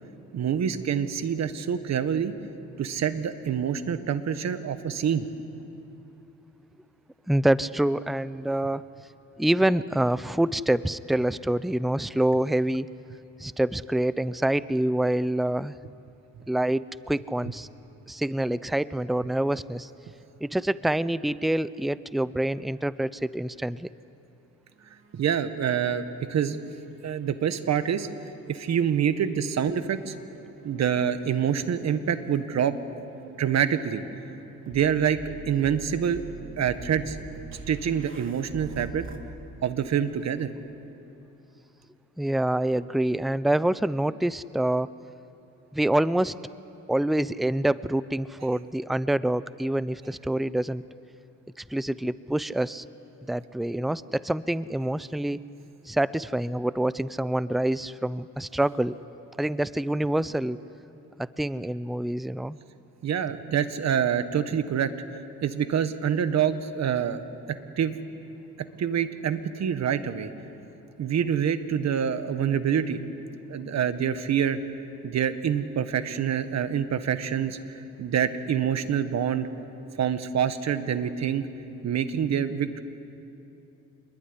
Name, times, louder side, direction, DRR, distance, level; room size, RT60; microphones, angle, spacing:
voice 1, 0.3-2.3 2.8-5.3 25.1-26.0 26.3-26.6 27.0-28.1 28.5-30.2 30.6-32.8 33.4-34.0 34.7-35.2 35.5-36.2 36.6-37.2 37.7-39.1 39.6-40.5 63.0-64.9 65.4-67.2 67.8-68.0 68.8-70.3 71.0-73.0 73.5-74.6 75.0-77.6 78.0-79.5 80.0-81.5 81.8-82.8, right 8 dB, 60° right, 10 dB, 1.6 m, -26 dB
voice 2, 7.3-8.8 9.4-12.9 13.4-15.8 16.5-17.7 18.1-19.9 20.4-23.9 42.2-45.0 45.7-46.3 46.9-50.8 51.6-52.9 53.2-55.4 55.9-58.9 59.4-60.6 61.2-62.6, right 1 dB, ahead, 17 dB, 0.6 m, -26 dB
sound 1, 24.7-26.3 26.6-28.0 28.7-39.2, right 5 dB, 45° right, 2.8 m, -46 dB
26.5 x 21.5 x 10.0 m, 2.8 s
cardioid pair, 90°, 30 cm